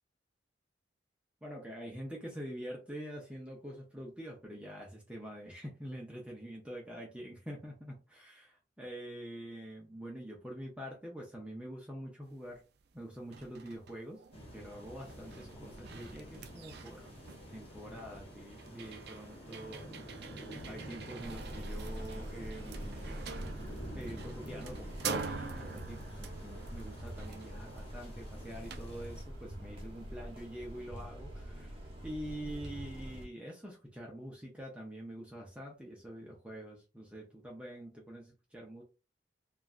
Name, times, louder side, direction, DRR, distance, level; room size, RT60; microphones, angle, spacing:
voice 1, 1.4-12.6 12.9-14.2 14.5-17.1 17.5-23.4 24.0-38.8, equal, 5° right, -2 dB, 0.6 m, -46 dB
sound 1, 12.5-12.6 13.0-30.9, right 5 dB, 65° right, 0.4 m, -47 dB
sound 2, 14.3-29.2, equal, 35° left, 1.0 m, -49 dB
sound 3, 21.2-33.3, equal, 30° right, 0.9 m, -45 dB
3.1 x 2.3 x 2.4 m, 0.31 s
head